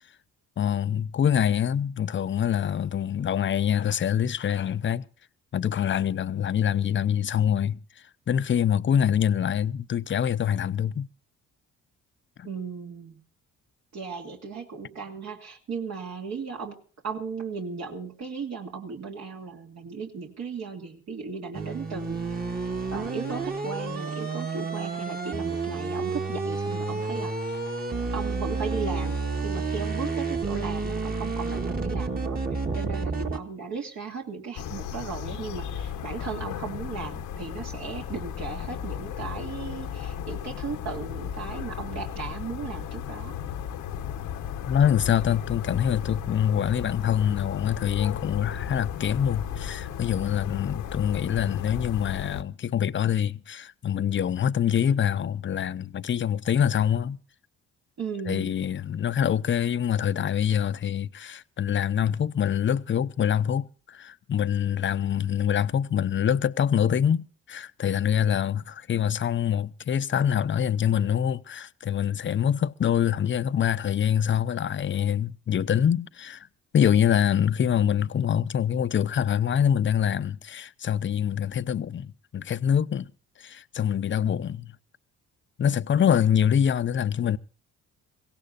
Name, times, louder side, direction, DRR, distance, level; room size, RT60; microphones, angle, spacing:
voice 1, 0.6-5.1 5.5-7.8 8.3-11.1 12.4-12.5 44.7-57.2 58.3-76.5 76.7-83.1 83.4-84.7 85.6-87.4, left 9 dB, 40° left, 0.7 m, -25 dB
voice 2, 12.4-13.2 13.9-16.8 17.0-22.6 22.9-27.6 28.1-43.3 58.0-58.5, right 5 dB, 60° right, 2.5 m, -36 dB
sound 1, 21.5-33.4, right 4 dB, 30° right, 1.8 m, -30 dB
sound 2, 34.5-52.4, left 9 dB, 90° left, 1.2 m, -35 dB
22.5 x 17.0 x 2.5 m
cardioid pair, 90°, 30 cm